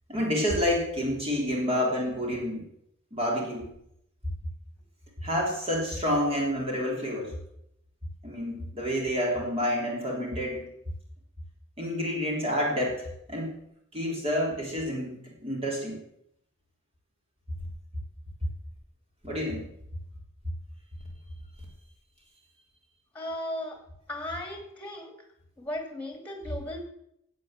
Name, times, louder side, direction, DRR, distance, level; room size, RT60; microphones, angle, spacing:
voice 1, 0.1-2.7 3.1-3.7 5.2-7.3 8.2-10.6 11.8-13.5 13.9-16.0 19.2-19.7, equal, 30° right, -2 dB, 3.4 m, -29 dB
voice 2, 23.1-23.8 24.1-25.1 25.6-26.8, left 1 dB, 5° left, 3 dB, 2.6 m, -36 dB
16.0 x 8.6 x 7.5 m, 0.78 s
head